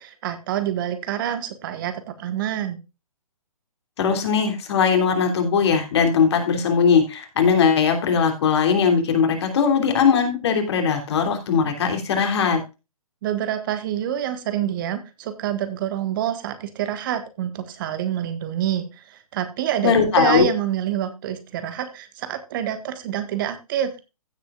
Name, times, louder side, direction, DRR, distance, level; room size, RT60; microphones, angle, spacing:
voice 1, 0.0-2.8 13.2-24.0, right 10 dB, 35° right, 9 dB, 1.5 m, -27 dB
voice 2, 4.0-12.6 19.8-20.5, left 6 dB, 50° left, 5 dB, 3.3 m, -19 dB
16.0 x 7.6 x 2.4 m, 0.27 s
figure-of-eight pair, 135°, 19 cm